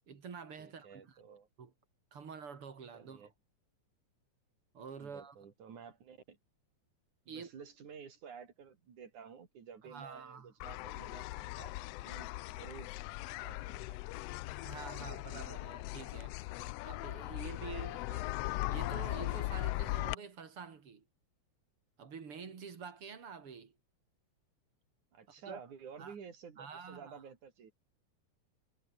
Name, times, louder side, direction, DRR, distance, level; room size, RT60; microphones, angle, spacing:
voice 1, 0.1-1.2 1.6-1.7 2.1-3.2 4.7-5.4 7.3-7.5 9.8-10.5 14.6-16.4 16.8-18.3 18.7-21.0 22.0-23.8 25.5-25.6 26.0-26.1 26.6-27.2, right 6 dB, 50° right, 3.4 m, -47 dB
voice 2, 0.6-1.5 2.9-3.3 5.0-6.4 7.3-11.7 12.0-12.9 13.4-14.0 17.8-17.9 25.1-27.7, right 6 dB, 85° right, 4.7 m, -52 dB
sound 1, 10.6-20.1, left 19 dB, 85° left, 1.4 m, -39 dB
omnidirectional pair, 3.3 m